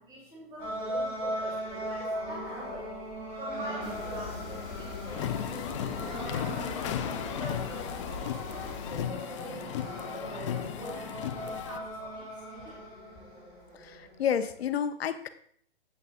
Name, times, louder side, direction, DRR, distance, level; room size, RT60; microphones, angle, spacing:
voice 1, 0.0-2.9 3.4-6.5 7.0-8.1 8.5-12.9, equal, 15° right, -5 dB, 3.1 m, -44 dB
sound 1, 0.6-14.7, equal, 30° right, 3.3 m, -39 dB
sound 2, 3.8-9.0, left 6 dB, 55° left, 1.2 m, -42 dB
sound 3, 5.1-11.8, left 11 dB, 30° left, 0.4 m, -36 dB
voice 2, 13.8-15.3, left 8 dB, 75° left, 10 dB, 0.8 m, -30 dB
9.3 x 8.0 x 2.5 m, 0.62 s
hypercardioid pair, 145°, 31 cm